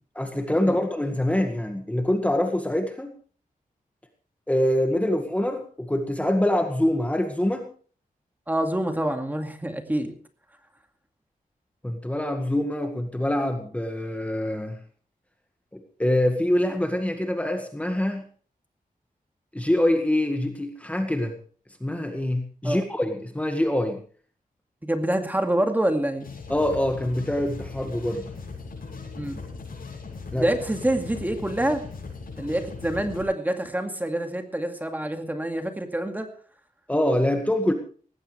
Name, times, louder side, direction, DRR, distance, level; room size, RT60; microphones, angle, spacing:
voice 1, 0.2-3.1 4.5-7.7 11.8-14.8 15.7-18.2 19.5-21.3 21.8-24.0 26.5-28.3 30.3-30.5 36.9-37.7, left 1 dB, 10° left, 5 dB, 1.8 m, -25 dB
voice 2, 8.5-10.1 22.6-22.8 24.8-26.3 29.2-29.4 30.4-31.8 32.4-36.3, right 1 dB, 10° right, 5 dB, 2.2 m, -26 dB
sound 1, 26.2-33.2, left 4 dB, 80° left, 7.1 m, -39 dB
18.5 x 16.5 x 3.4 m, 0.44 s
wide cardioid pair, 120°, 15 cm